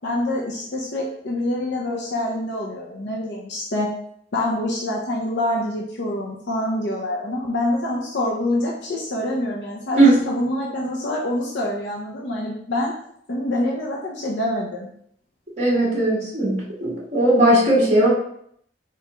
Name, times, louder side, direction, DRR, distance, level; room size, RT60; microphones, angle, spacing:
voice 1, 0.0-3.9 4.3-12.9 13.3-14.9, left 1 dB, 75° left, -3 dB, 0.7 m, -26 dB
voice 2, 15.6-18.1, right 1 dB, 35° right, -9 dB, 1.5 m, -17 dB
4.7 x 3.4 x 3.0 m, 0.68 s
head